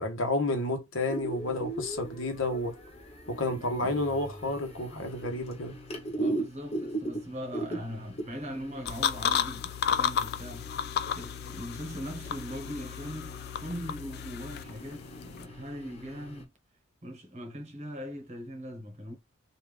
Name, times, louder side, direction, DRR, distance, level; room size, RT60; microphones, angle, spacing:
voice 1, 0.0-2.8 3.3-5.8, left 2 dB, 80° left, 1.0 m, -30 dB
sound 1, 1.1-16.4, right 1 dB, 35° left, 0.9 m, -40 dB
voice 2, 3.4-4.0 6.1-10.7 11.1-16.5 17.0-19.2, equal, 35° right, 1.0 m, -40 dB
sound 2, 8.9-15.4, left 8 dB, 55° left, 0.4 m, -33 dB
3.4 x 2.5 x 3.3 m
head